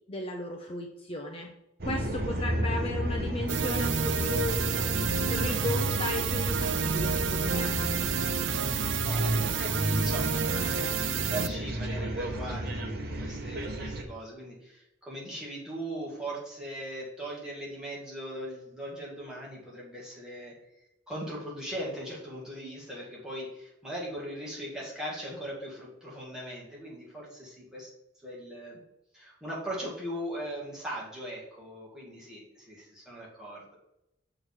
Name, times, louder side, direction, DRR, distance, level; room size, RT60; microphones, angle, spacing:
voice 1, 0.1-1.5 1.8-4.6 5.3-7.8, left 2 dB, 30° left, 1 dB, 0.6 m, -35 dB
sound 1, 1.8-14.0, right 1 dB, 55° right, 1.0 m, -32 dB
sound 2, 3.5-11.5, right 7 dB, 75° right, 0.5 m, -30 dB
voice 2, 8.0-8.3 8.7-20.6 21.1-27.9 28.2-28.8 29.1-33.8, right 1 dB, 5° right, -6 dB, 2.1 m, -39 dB
6.6 x 3.9 x 6.1 m, 0.86 s
head